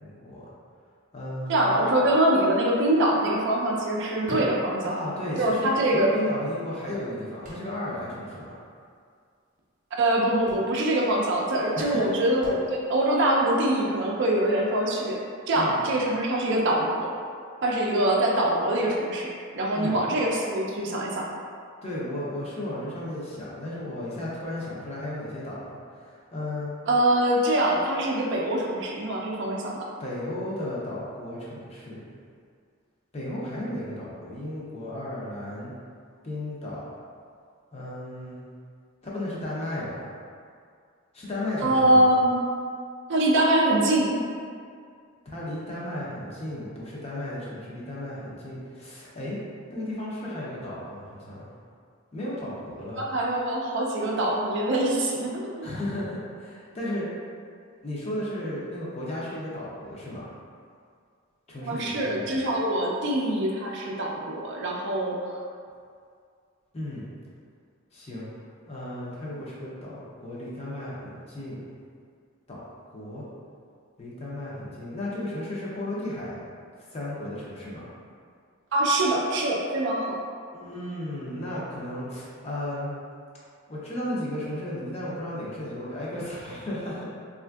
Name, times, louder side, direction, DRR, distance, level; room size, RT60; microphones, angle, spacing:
voice 1, 0.0-0.5 1.1-1.8 4.8-8.5 11.8-12.0 15.5-15.8 19.7-20.0 21.8-26.7 30.0-32.1 33.1-35.7 36.2-36.8 37.7-38.4 39.0-40.1 41.1-42.1 45.2-49.4 49.7-51.5 52.1-53.1 55.6-57.1 57.8-60.2 61.5-62.4 66.7-67.0 67.9-68.3 68.7-71.7 72.5-72.6 72.9-73.2 74.0-76.4 76.9-77.8 80.5-83.0 83.7-87.0, left 1 dB, 30° left, -7 dB, 0.5 m, -34 dB
voice 2, 1.5-5.0 5.4-6.1 10.0-15.2 15.5-17.1 17.6-19.3 19.5-21.3 26.9-29.9 41.6-42.4 43.1-44.2 53.0-55.7 61.6-65.2 78.7-80.2, right 1 dB, 55° right, -2 dB, 0.4 m, -24 dB
sound 1, 2.5-2.6 2.9-5.5 5.9-6.0 6.6-8.1 8.4-8.5 8.7-9.0 9.8-10.0 10.3-13.1 13.7-13.8, equal, 35° right, 0.7 m, -42 dB
3.5 x 2.4 x 2.3 m, 2.2 s
head